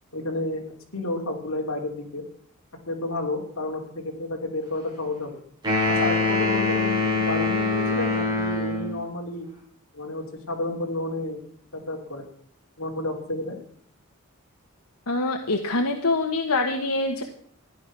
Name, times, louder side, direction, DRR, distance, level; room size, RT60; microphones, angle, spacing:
voice 1, 0.1-0.6 0.9-2.2 2.9-5.4 5.9-9.5 9.9-11.4 11.7-12.3 12.8-13.6, left 2 dB, 65° left, 1 dB, 3.2 m, -31 dB
sound 1, 5.6-9.0, left 3 dB, 20° right, 6.9 m, -24 dB
voice 2, 15.1-17.2, left 2 dB, 85° left, 4 dB, 1.4 m, -25 dB
15.0 x 11.0 x 6.1 m, 0.62 s
head